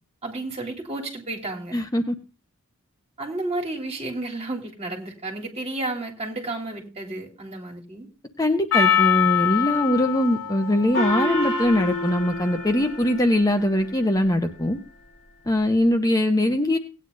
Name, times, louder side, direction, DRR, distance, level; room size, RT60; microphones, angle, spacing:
voice 1, 0.2-1.8 3.2-8.1, right 2 dB, 30° right, -1 dB, 3.1 m, -32 dB
voice 2, 1.7-2.1 8.4-14.8 15.5-16.8, left 1 dB, 15° left, 6 dB, 0.9 m, -22 dB
Percussion, 8.7-13.3, left 9 dB, 85° left, 2.7 m, -25 dB
Gong, 10.9-13.9, left 1 dB, 55° left, 2.4 m, -29 dB
18.0 x 9.6 x 2.6 m, 0.32 s
head